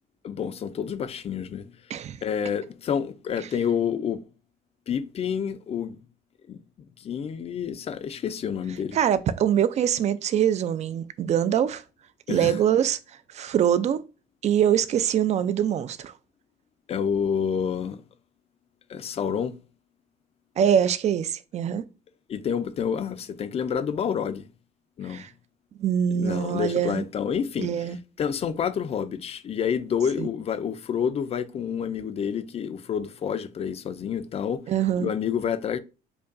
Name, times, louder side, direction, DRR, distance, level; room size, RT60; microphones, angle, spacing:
voice 1, 0.2-1.7 2.2-4.2 4.9-6.0 6.5-6.6 7.0-9.1 12.3-12.6 16.9-18.0 18.9-19.6 22.3-24.5 25.0-25.2 26.1-34.7 35.0-35.8, left 7 dB, 35° left, 0.4 m, -28 dB
voice 2, 8.9-11.8 12.3-13.0 13.3-14.0 14.4-16.1 20.6-21.8 25.1-25.3 25.8-27.0 27.6-28.0 30.2-30.3 34.7-35.1, right 9 dB, 40° right, 0.4 m, -23 dB
5.1 x 2.2 x 2.5 m
cardioid pair, 110°, 17 cm